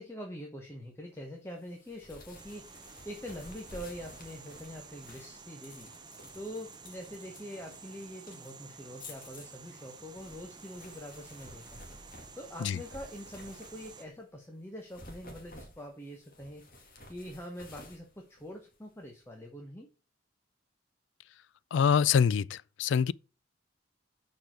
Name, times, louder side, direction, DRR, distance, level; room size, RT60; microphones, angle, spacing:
voice 1, 0.0-2.8 3.0-5.9 6.3-11.8 12.3-19.9, equal, 15° left, 1.2 m, -44 dB
sound 1, 1.6-14.2 14.7-19.0, left 1 dB, 50° left, 2.0 m, -53 dB
sound 2, 2.4-14.1, right 5 dB, 25° right, 0.7 m, -52 dB
voice 2, 21.7-23.1, left 7 dB, 70° left, 0.3 m, -25 dB
6.8 x 4.8 x 5.9 m
head